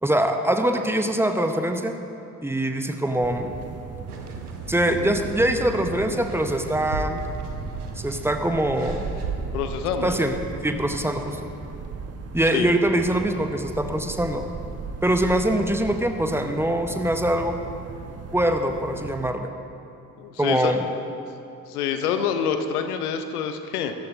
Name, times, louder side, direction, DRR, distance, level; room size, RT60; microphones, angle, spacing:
voice 1, 0.0-2.0 2.4-3.5 4.7-7.3 8.0-9.1 10.0-10.4 10.6-11.5 12.3-14.5 15.0-17.6 18.3-19.5 20.4-20.8, right 1 dB, 5° right, 5 dB, 1.1 m, -23 dB
sound 1, 3.2-19.3, right 5 dB, 35° right, 1.1 m, -36 dB
sound 2, 4.1-9.3, right 4 dB, 85° right, 0.9 m, -36 dB
voice 2, 9.5-10.2 12.5-12.7 20.2-20.7 21.7-23.9, left 8 dB, 75° left, 8 dB, 0.9 m, -26 dB
19.0 x 14.0 x 2.8 m, 2.8 s
figure-of-eight pair, 40°, 45 cm